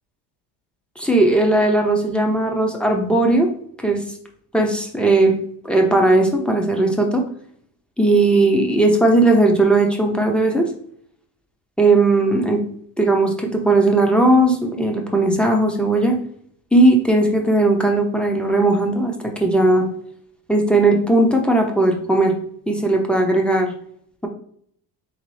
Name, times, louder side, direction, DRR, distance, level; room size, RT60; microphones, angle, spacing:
voice 1, 1.0-3.5 3.8-4.0 4.5-5.3 5.6-7.2 8.0-10.7 11.8-12.6 13.0-16.2 16.7-19.9 20.5-22.4 22.7-23.7, right 2 dB, ahead, 2 dB, 0.5 m, -17 dB
3.9 x 2.9 x 3.1 m, 0.63 s
cardioid pair, 125°, 44 cm